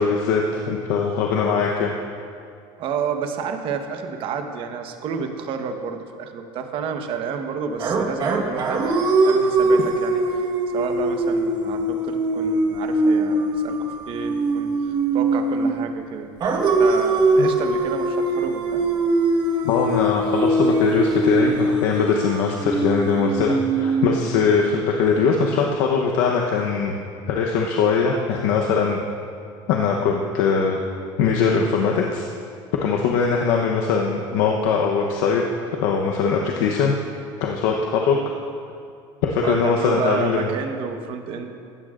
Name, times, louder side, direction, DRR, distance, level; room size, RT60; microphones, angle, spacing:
voice 1, 0.0-1.9 17.4-17.5 19.6-26.9 27.3-29.0 29.7-30.8 31.2-32.2 32.8-35.4 35.7-37.0 37.4-38.2 39.2-40.5, left 5 dB, 85° left, 0 dB, 0.9 m, -21 dB
voice 2, 2.8-16.3 16.8-18.8 39.4-41.5, right 6 dB, 60° right, 5 dB, 1.2 m, -30 dB
sound 1, 7.8-15.9 16.4-24.5, right 2 dB, 40° right, 1.4 m, -22 dB
16.5 x 12.5 x 2.5 m, 2.4 s
cardioid pair, 120°, 11 cm